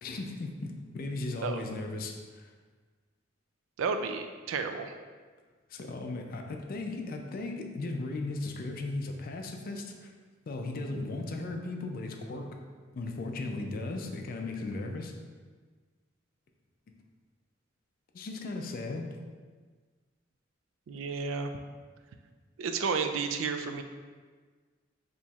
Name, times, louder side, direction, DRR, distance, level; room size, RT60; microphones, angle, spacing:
voice 1, 0.0-2.5 5.7-10.1 10.5-12.6 12.9-15.2 18.1-19.1, left 2 dB, 45° left, 3 dB, 0.4 m, -36 dB
voice 2, 3.8-4.9 20.9-21.5 22.6-23.8, right 5 dB, 75° right, 6 dB, 0.3 m, -32 dB
4.2 x 3.0 x 2.3 m, 1.5 s
head